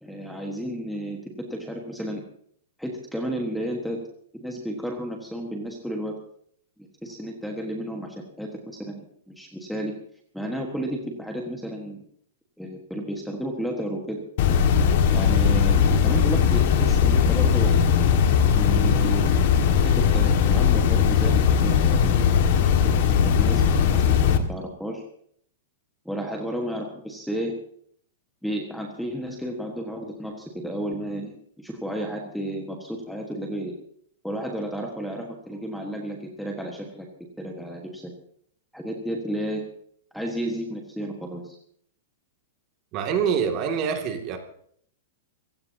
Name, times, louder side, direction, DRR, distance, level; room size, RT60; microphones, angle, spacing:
voice 1, 0.0-2.2 2.8-4.0 4.3-6.2 7.0-9.9 10.3-12.0 12.6-14.2 14.7-14.8 15.1-17.8 18.5-22.2 22.6-25.0 26.0-27.6 28.4-33.7 34.2-37.1 37.4-38.1 38.7-39.6 40.1-41.6, right 1 dB, ahead, 1 dB, 1.5 m, -32 dB
sound 1, 14.4-24.4, left 7 dB, 45° left, 1.8 m, -19 dB
voice 2, 42.9-44.4, right 7 dB, 30° right, 4 dB, 2.4 m, -25 dB
25.5 x 16.0 x 2.8 m, 0.63 s
supercardioid pair, 170°, 0 cm